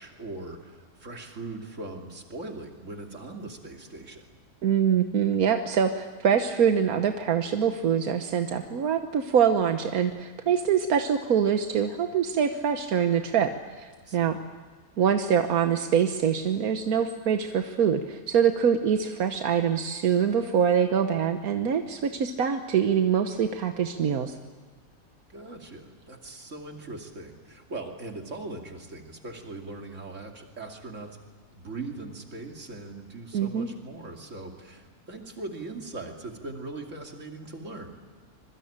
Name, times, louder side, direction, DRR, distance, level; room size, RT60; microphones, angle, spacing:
voice 1, 0.0-4.3 14.0-14.3 25.3-31.2 31.5-38.0, right 2 dB, 60° right, 2 dB, 3.0 m, -40 dB
voice 2, 4.6-13.5 13.8-14.4 15.0-24.3 33.3-33.7, right 8 dB, 85° right, 7 dB, 1.5 m, -24 dB
25.5 x 22.5 x 8.8 m, 1.4 s
omnidirectional pair, 1.5 m